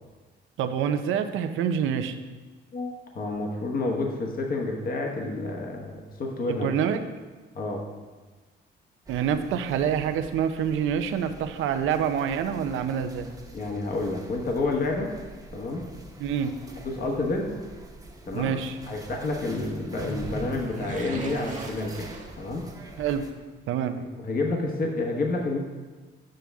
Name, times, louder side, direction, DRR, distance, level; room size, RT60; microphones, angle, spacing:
voice 1, 0.6-2.1 6.5-7.0 9.1-13.3 16.2-16.5 18.3-18.8 23.0-23.2 23.7-24.0, right 8 dB, 85° right, 8 dB, 0.6 m, -26 dB
voice 2, 2.7-6.7 7.5-7.9 13.5-15.1 15.5-15.8 16.8-17.5 18.3-18.6 18.9-22.1 22.4-22.6 23.9-25.6, left 2 dB, 45° left, 1 dB, 1.1 m, -29 dB
sound 1, 9.1-23.3, right 2 dB, 20° right, 1.0 m, -44 dB
sound 2, 19.6-23.0 23.2-23.3, right 4 dB, 40° right, 1.0 m, -40 dB
7.7 x 6.1 x 3.5 m, 1.3 s
cardioid pair, 90°, 20 cm